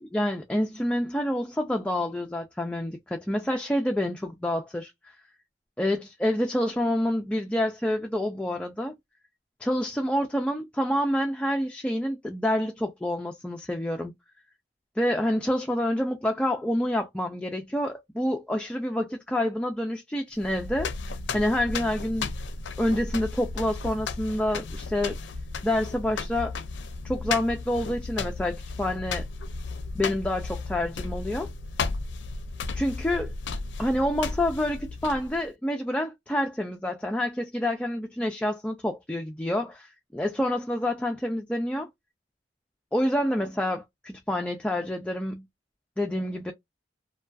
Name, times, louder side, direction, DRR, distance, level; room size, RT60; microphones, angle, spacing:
voice 1, 0.1-4.9 5.8-8.9 9.6-14.1 15.0-20.9 21.3-22.3 22.8-25.2 25.6-26.6 27.0-29.3 30.0-31.5 32.7-33.3 33.8-41.9 42.9-45.5 46.0-46.5, left 1 dB, 5° left, 0.3 m, -27 dB
sound 1, 20.4-35.5, left 4 dB, 80° left, 0.4 m, -34 dB
2.4 x 2.2 x 2.3 m
head